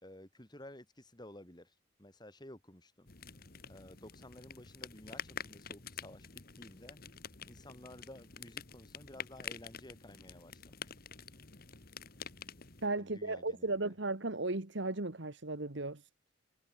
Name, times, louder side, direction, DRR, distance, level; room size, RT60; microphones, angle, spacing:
voice 1, 0.0-3.1 3.7-6.3 6.6-7.0 7.4-11.0 13.0-13.9, left 1 dB, 20° left, 3.3 m, -53 dB
sound 1, 3.1-12.9, left 7 dB, 50° left, 1.9 m, -48 dB
voice 2, 12.8-16.1, right 2 dB, 65° right, 1.6 m, -35 dB
head